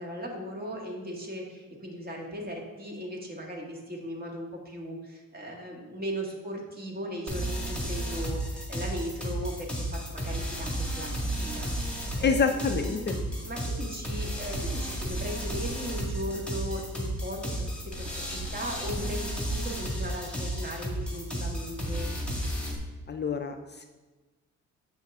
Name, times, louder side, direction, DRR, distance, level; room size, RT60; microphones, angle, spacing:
voice 1, 0.0-12.5 12.8-17.6 18.0-22.1, equal, 30° right, 0 dB, 1.7 m, -38 dB
sound 1, 7.3-22.8, right 1 dB, 5° left, 1.7 m, -33 dB
voice 2, 12.2-13.1 23.1-23.8, left 5 dB, 35° left, 5 dB, 0.5 m, -27 dB
7.3 x 5.7 x 3.6 m, 1.2 s
cardioid pair, 90°, 30 cm